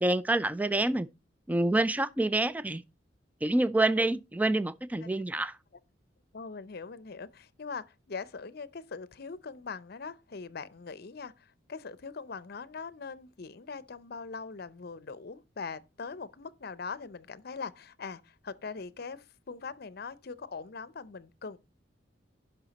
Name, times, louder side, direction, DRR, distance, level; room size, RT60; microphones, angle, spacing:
voice 1, 0.0-1.1 1.5-2.8 3.4-5.6, right 2 dB, 10° right, 0.4 m, -27 dB
voice 2, 6.3-21.6, left 5 dB, 60° left, 0.6 m, -41 dB
11.0 x 5.8 x 4.1 m
head